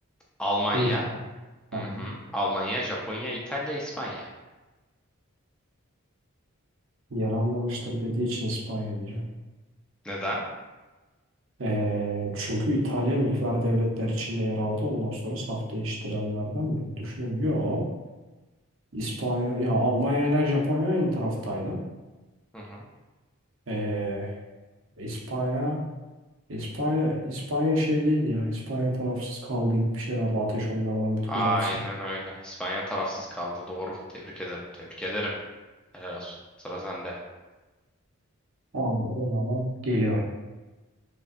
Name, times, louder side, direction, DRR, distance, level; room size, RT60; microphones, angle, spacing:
voice 1, 0.4-1.1 1.7-4.3 10.0-10.4 22.5-22.8 31.3-35.3 35.9-36.3 36.6-37.2, equal, 5° left, -4 dB, 0.4 m, -31 dB
voice 2, 1.7-2.1 7.1-9.2 11.6-17.8 18.9-21.8 23.7-24.4 25.0-25.8 26.5-31.8 38.7-40.2, equal, 60° right, -3 dB, 0.8 m, -27 dB
5.1 x 2.2 x 2.5 m, 1.2 s
head